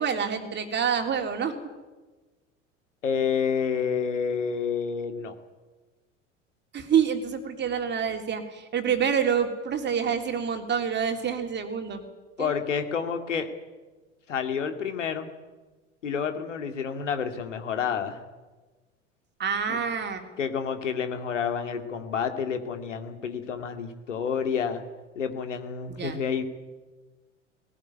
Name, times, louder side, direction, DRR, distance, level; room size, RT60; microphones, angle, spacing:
voice 1, 0.0-1.5 6.7-12.0 12.4-12.5 19.4-20.2 26.0-26.2, right 7 dB, 30° right, 5 dB, 3.4 m, -27 dB
voice 2, 3.0-5.3 12.4-13.5 14.3-15.3 16.0-18.2 19.7-19.8 20.4-24.8 25.2-26.4, left 6 dB, 70° left, 7 dB, 2.5 m, -29 dB
19.5 x 18.0 x 9.7 m, 1.2 s
figure-of-eight pair, 80°, 37 cm